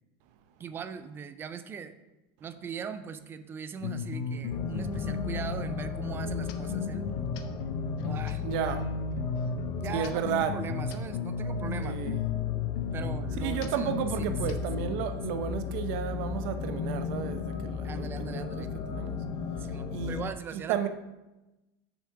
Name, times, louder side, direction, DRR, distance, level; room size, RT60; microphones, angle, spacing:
voice 1, 0.6-2.0 2.4-7.1 8.0-8.4 9.8-12.0 12.9-14.6 17.8-18.7 19.6-20.9, right 6 dB, 15° right, 0.3 m, -40 dB
sound 1, 3.8-14.9, left 5 dB, 70° left, 0.8 m, -34 dB
sound 2, 4.5-20.3, left 6 dB, 40° left, 0.6 m, -36 dB
voice 2, 8.4-8.9 9.9-10.5 11.8-12.2 13.4-19.2 19.9-20.2 20.5-20.9, right 9 dB, 55° right, 0.7 m, -33 dB
6.8 x 6.1 x 4.7 m
supercardioid pair, 165°, 13 cm